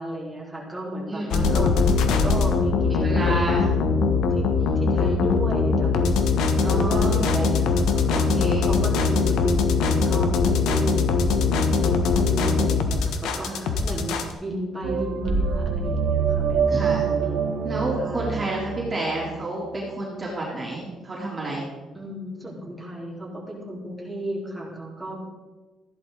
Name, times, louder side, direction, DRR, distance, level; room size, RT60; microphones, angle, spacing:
voice 1, 0.0-1.7 2.2-3.6 3.9-4.5 4.7-17.6 17.9-18.4 21.9-25.2, right 1 dB, ahead, -7 dB, 4.1 m, -34 dB
voice 2, 1.1-1.7 2.7-3.6 5.0-5.2 6.6-7.2 8.1-8.7 13.4-13.7 16.7-17.1 17.6-21.7, right 2 dB, 25° right, -5 dB, 3.4 m, -30 dB
sound 1, 1.3-14.3, left 4 dB, 80° left, 1.3 m, -21 dB
sound 2, 14.8-19.5, right 5 dB, 70° right, 1.8 m, -25 dB
14.5 x 11.5 x 4.0 m, 1.2 s
cardioid pair, 135°, 0 cm